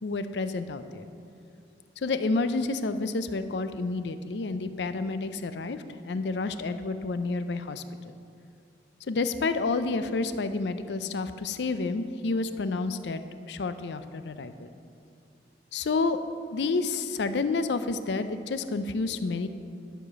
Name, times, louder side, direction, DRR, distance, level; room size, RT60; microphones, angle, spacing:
voice 1, 0.0-1.1 2.0-8.1 9.1-14.7 15.7-16.2 16.5-19.5, left 3 dB, 75° left, 11 dB, 0.5 m, -30 dB
11.0 x 5.0 x 6.8 m, 2.6 s
head